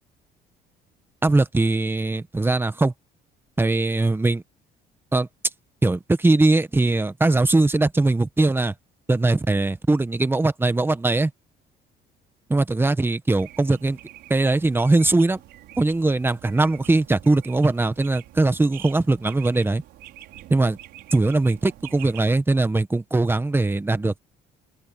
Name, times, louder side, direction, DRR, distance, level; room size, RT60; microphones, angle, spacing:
voice 1, 1.2-2.9 3.6-4.4 5.1-5.3 5.8-8.7 9.1-11.3 12.5-14.0 14.3-15.4 15.8-19.8 20.5-20.8 21.1-24.1, right 2 dB, 15° right, 1.4 m, -20 dB
sound 1, 13.3-22.3, right 15 dB, 80° right, 5.1 m, -45 dB
open air
cardioid pair, 110°, 17 cm